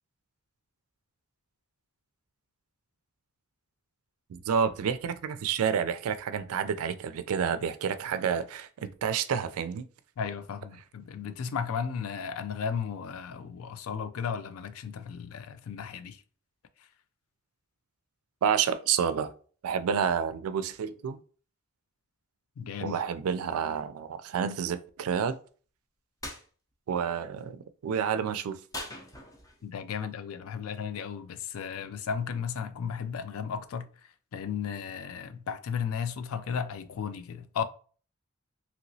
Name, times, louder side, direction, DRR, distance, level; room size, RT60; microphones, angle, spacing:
voice 1, 4.3-9.9 18.4-19.3 19.6-21.2 22.8-25.4 26.9-28.6, right 7 dB, 85° right, 0.3 m, -29 dB
voice 2, 10.2-16.2 22.6-23.0 29.6-33.9 34.3-37.6, left 7 dB, 80° left, 0.4 m, -34 dB
sound 1, 26.2-26.4 28.7-29.7, left 1 dB, 15° left, 0.5 m, -40 dB
2.9 x 2.9 x 2.7 m
head